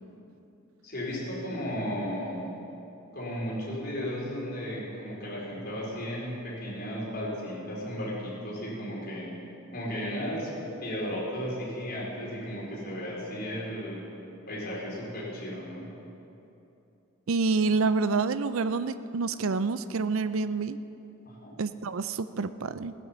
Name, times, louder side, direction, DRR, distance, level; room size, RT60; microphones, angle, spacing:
voice 1, 0.8-2.5 3.1-9.3 9.7-10.5 10.8-14.1 14.5-15.9 21.2-21.5, equal, 50° left, -6 dB, 4.6 m, -34 dB
voice 2, 17.3-20.8 21.6-22.9, right 4 dB, 80° right, 13 dB, 0.5 m, -28 dB
15.5 x 10.5 x 7.4 m, 2.9 s
head